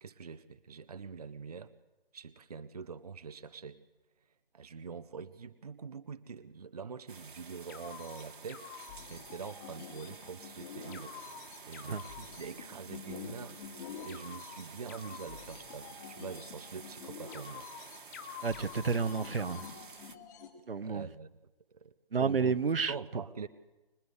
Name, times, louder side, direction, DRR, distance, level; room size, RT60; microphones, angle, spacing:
voice 1, 0.0-1.7 2.1-3.8 4.5-8.7 9.1-11.2 11.7-17.7 20.8-21.3 21.7-21.9 22.2-22.6 22.9-23.5, right 5 dB, 40° right, 0.8 m, -44 dB
sound 1, 7.1-20.2, right 5 dB, 55° right, 1.9 m, -51 dB
sound 2, 7.7-20.5, left 7 dB, 20° left, 2.2 m, -47 dB
voice 2, 18.4-19.7 20.7-21.1 22.1-22.9, right 5 dB, 75° right, 1.3 m, -30 dB
25.5 x 21.5 x 8.1 m
hypercardioid pair, 170°, 29 cm